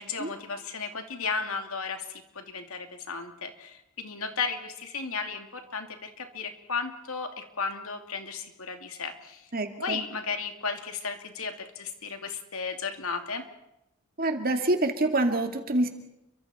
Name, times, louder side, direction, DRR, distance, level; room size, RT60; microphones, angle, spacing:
voice 1, 0.0-9.5 9.8-13.5, left 5 dB, 70° left, 5 dB, 2.7 m, -34 dB
voice 2, 9.5-10.0 14.2-15.9, right 2 dB, 40° right, 5 dB, 2.5 m, -26 dB
30.0 x 24.0 x 4.4 m, 0.87 s
head